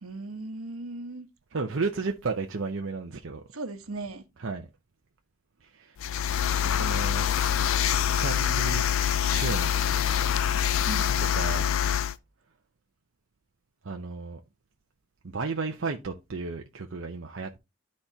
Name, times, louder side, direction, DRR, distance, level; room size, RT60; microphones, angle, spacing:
voice 1, 0.0-1.3 3.5-4.2 10.8-11.4, right 2 dB, 85° right, 1.1 m, -37 dB
voice 2, 1.5-3.4 4.4-4.7 5.6-6.0 6.7-7.3 8.2-8.8 9.3-9.7 11.2-11.7 13.8-14.4 15.2-17.6, right 4 dB, 65° right, 0.7 m, -33 dB
sound 1, 6.0-12.1, left 9 dB, 75° left, 0.4 m, -25 dB
12.0 x 4.2 x 2.8 m
head